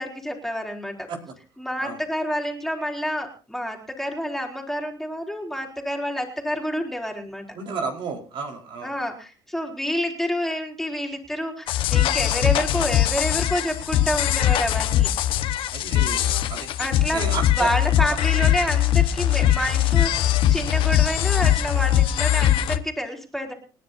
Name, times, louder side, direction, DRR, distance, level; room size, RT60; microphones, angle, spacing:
voice 1, 0.0-1.1 1.6-7.4 8.8-15.1 16.8-23.5, equal, 5° left, 1 dB, 4.1 m, -28 dB
voice 2, 7.5-8.9 15.7-16.7 17.1-17.7 18.0-18.1, right 4 dB, 60° right, 2 dB, 4.8 m, -32 dB
sound 1, 11.7-22.8, left 12 dB, 70° left, 1.4 m, -21 dB
29.0 x 10.5 x 2.8 m, 0.35 s
cardioid pair, 95°, 9 cm